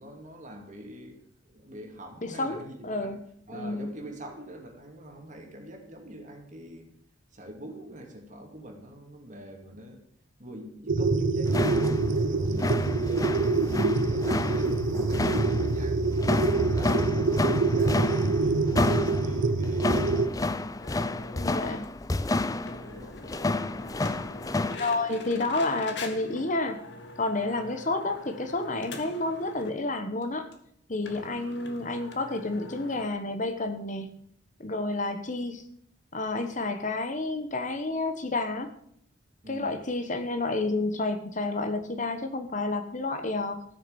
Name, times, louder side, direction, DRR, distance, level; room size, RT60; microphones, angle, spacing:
voice 1, 0.0-3.2 3.5-6.9 7.3-10.0 10.4-20.6 22.6-23.8 31.0-31.3 39.4-39.7, equal, 40° right, 3 dB, 2.4 m, -45 dB
voice 2, 2.2-3.2 3.5-3.9 13.6-14.0 21.3-21.9 24.7-26.8 27.2-30.5 30.9-34.2 34.6-35.6 36.1-38.7 39.5-43.6, left 2 dB, 40° left, 8 dB, 1.1 m, -30 dB
sound 1, 10.9-20.3, right 3 dB, 75° right, 0.8 m, -25 dB
sound 2, 11.5-24.8, left 2 dB, 20° left, 0.4 m, -30 dB
sound 3, 20.8-21.4 21.8-21.9 22.1-22.2 22.7-29.8 30.2-30.3 30.5-30.6 31.0-33.1, left 3 dB, 60° left, 1.7 m, -44 dB
15.0 x 6.5 x 7.1 m, 0.69 s
head